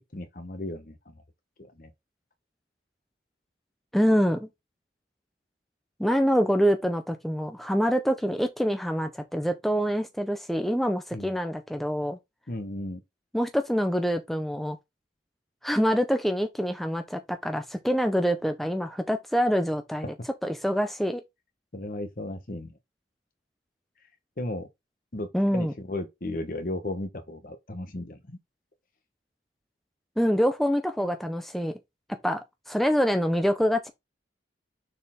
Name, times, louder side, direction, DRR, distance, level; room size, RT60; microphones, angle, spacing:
voice 1, 0.1-1.2 1.6-1.9 11.1-11.3 12.5-13.0 21.7-22.7 24.4-24.7 25.1-28.4, left 1 dB, 50° left, 1.1 m, -35 dB
voice 2, 3.9-4.5 6.0-12.2 13.3-14.8 15.6-20.1 20.4-21.2 25.3-25.7 30.2-31.7 32.1-33.9, equal, ahead, 0.6 m, -25 dB
6.8 x 4.2 x 3.7 m
head